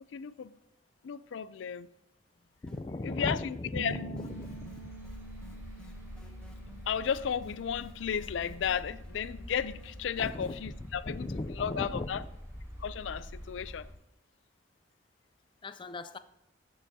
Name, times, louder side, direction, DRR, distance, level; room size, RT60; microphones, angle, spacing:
voice 1, 0.1-0.5 1.0-1.9 3.0-4.0 6.9-12.2 12.8-13.9, left 7 dB, 85° left, 0.4 m, -34 dB
voice 2, 2.6-4.7 10.2-10.5 11.1-12.2 15.6-16.2, left 2 dB, 25° left, 0.4 m, -37 dB
sound 1, 2.7-3.2 3.4-10.5, left 1 dB, 5° left, 0.9 m, -55 dB
sound 2, 3.7-10.0, right 3 dB, 85° right, 2.3 m, -49 dB
sound 3, 4.2-13.9, equal, 15° right, 2.8 m, -46 dB
15.0 x 6.9 x 2.8 m
head